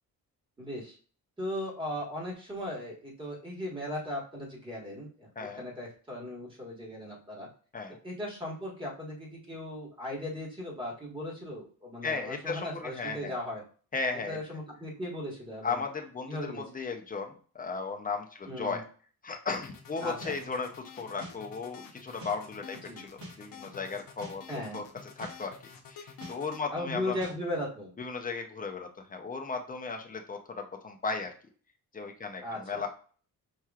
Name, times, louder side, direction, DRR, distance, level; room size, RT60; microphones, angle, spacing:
voice 1, 0.6-1.0 1.4-7.5 8.0-13.6 14.3-15.8 16.3-16.6 18.5-18.8 20.0-20.4 22.8-23.0 24.5-24.8 26.7-27.9 32.4-32.8, left 1 dB, 15° right, -3 dB, 1.4 m, -37 dB
voice 2, 12.0-13.4 13.9-14.4 15.6-18.8 19.2-24.9 25.2-25.6 25.9-27.2 28.0-31.3 31.9-32.9, left 4 dB, 25° left, 4 dB, 0.5 m, -36 dB
sound 1, 19.5-26.6, left 6 dB, 65° left, 0.8 m, -49 dB
sound 2, 20.2-20.4 21.2-21.4 22.2-22.4 23.2-23.4 24.2-24.4 25.2-25.4 26.2-26.4 27.2-27.4, equal, 65° right, 1.7 m, -43 dB
5.6 x 3.0 x 2.4 m, 0.41 s
wide cardioid pair, 155°, 37 cm